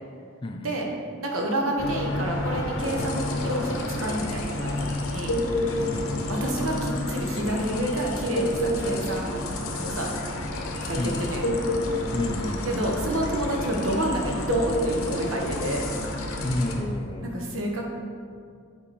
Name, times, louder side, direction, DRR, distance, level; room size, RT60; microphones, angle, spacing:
voice 1, 0.4-0.9 5.9-6.2 10.9-11.4 12.1-12.9 16.4-17.5, left 1 dB, 25° left, 6 dB, 0.4 m, -31 dB
voice 2, 1.2-5.3 6.3-9.3 9.8-10.1 10.8-11.4 12.6-15.8 17.2-17.8, right 1 dB, 75° right, 0 dB, 1.2 m, -29 dB
sound 1, 1.8-16.8, left 2 dB, 65° left, 0.8 m, -32 dB
sound 2, 2.8-16.7, left 1 dB, 85° left, 1.0 m, -31 dB
8.7 x 4.6 x 4.3 m, 2.3 s
head